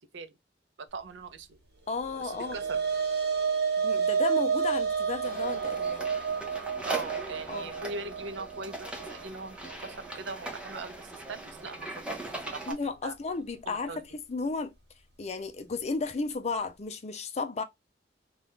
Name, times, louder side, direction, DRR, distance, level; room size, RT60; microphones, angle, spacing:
voice 1, 0.9-1.6 2.2-2.8 6.8-12.8 13.0-13.1 13.7-14.0, right 3 dB, 85° right, 0.6 m, -41 dB
voice 2, 1.9-2.6 3.8-6.1 7.5-7.7 12.7-14.7 15.2-17.6, left 4 dB, 35° left, 0.5 m, -33 dB
sound 1, 2.0-10.5, right 6 dB, 65° right, 1.2 m, -30 dB
sound 2, 5.2-12.7, right 2 dB, 5° right, 0.8 m, -40 dB
2.7 x 2.4 x 3.4 m
head